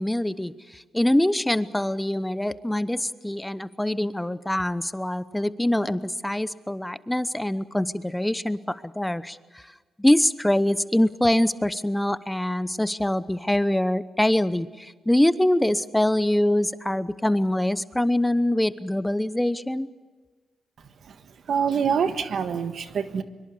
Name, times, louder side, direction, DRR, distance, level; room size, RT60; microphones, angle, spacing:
voice 1, 0.0-9.7 10.0-19.9, left 1 dB, 10° left, 15 dB, 0.9 m, -24 dB
voice 2, 21.0-23.2, right 7 dB, 70° right, 9 dB, 1.4 m, -26 dB
24.0 x 23.5 x 7.1 m, 1.3 s
cardioid pair, 60°, 0 cm